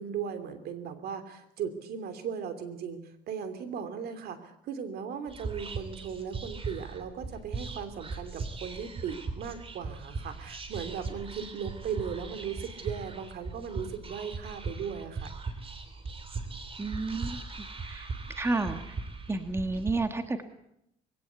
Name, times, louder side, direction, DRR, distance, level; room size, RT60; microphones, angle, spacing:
voice 1, 0.0-15.3, right 7 dB, 65° right, 9 dB, 2.9 m, -37 dB
Whispering, 5.3-19.9, right 4 dB, 35° right, 3.2 m, -39 dB
voice 2, 16.8-17.4 17.9-18.1 18.3-18.8 19.3-20.4, right 3 dB, 15° right, 7 dB, 1.6 m, -30 dB
22.0 x 17.0 x 8.2 m, 0.82 s
cardioid pair, 110°, 17 cm